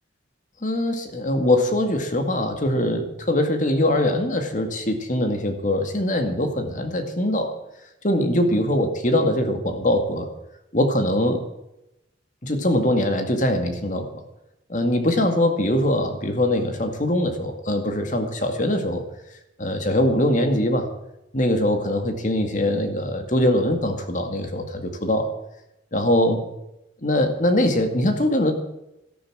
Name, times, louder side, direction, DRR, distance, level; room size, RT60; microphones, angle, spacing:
voice 1, 0.6-7.5 8.0-10.3 10.7-11.4 12.4-14.2 14.7-19.0 19.6-20.9 21.3-25.3 25.9-26.4 27.0-28.5, left 1 dB, 40° left, 5 dB, 2.1 m, -22 dB
14.0 x 11.5 x 7.4 m, 0.88 s
head